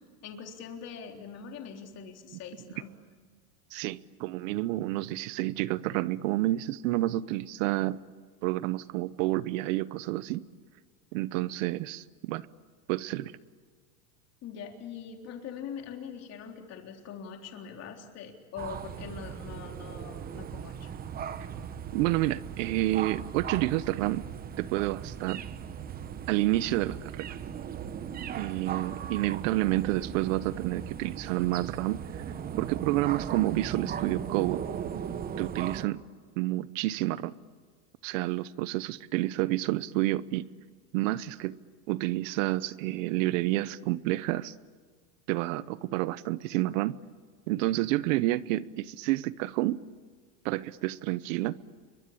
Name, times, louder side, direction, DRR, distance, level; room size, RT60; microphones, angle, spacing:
voice 1, 0.2-2.9 14.4-20.9, left 7 dB, 35° left, 3 dB, 3.7 m, -43 dB
voice 2, 3.7-8.0 8.4-10.4 11.1-12.5 12.9-13.3 21.9-24.3 24.6-25.4 26.3-27.3 28.3-32.2 32.6-34.6 35.4-36.0 36.4-37.3 38.0-40.5 40.9-41.6 41.9-44.5 45.3-47.0 47.5-49.8 50.4-51.6, right 17 dB, 60° right, 17 dB, 0.9 m, -29 dB
sound 1, 18.6-35.9, right 8 dB, 20° right, 1.0 m, -38 dB
28.5 x 23.5 x 8.6 m, 1.5 s
supercardioid pair, 145°, 43 cm